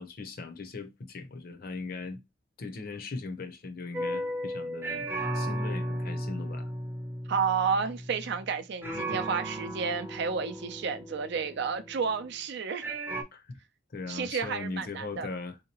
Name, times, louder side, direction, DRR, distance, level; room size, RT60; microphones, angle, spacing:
voice 1, 0.0-2.2 2.6-5.1 5.3-6.7 8.9-9.3 13.3-13.6 13.9-15.6, left 3 dB, 50° left, 0.6 m, -39 dB
sound 1, 3.9-8.6 8.8-12.4 12.8-13.2, right 1 dB, 10° right, 0.5 m, -35 dB
voice 2, 7.3-12.8 14.1-15.3, right 6 dB, 60° right, 0.4 m, -31 dB
3.6 x 2.8 x 2.9 m
head